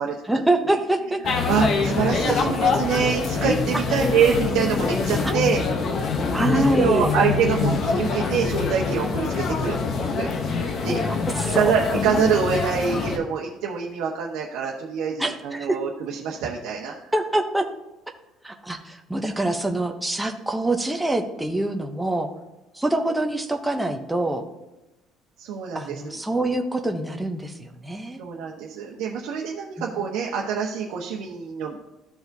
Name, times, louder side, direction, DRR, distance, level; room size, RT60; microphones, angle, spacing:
voice 1, 0.3-1.2 2.3-2.4 5.2-5.3 6.3-7.1 10.8-11.6 15.2-15.8 17.1-17.7 18.4-22.3 22.7-24.4 25.7-28.2 29.8-29.9, right 1 dB, 5° right, 3 dB, 0.5 m, -25 dB
sound 1, 1.2-13.2, left 4 dB, 35° left, 0.7 m, -24 dB
voice 2, 1.2-5.6 6.5-9.8 10.2-11.0 11.5-17.1 25.4-26.2 28.2-31.8, right 6 dB, 70° right, -2 dB, 1.0 m, -25 dB
14.5 x 4.9 x 2.6 m, 0.97 s
cardioid pair, 180°, 0 cm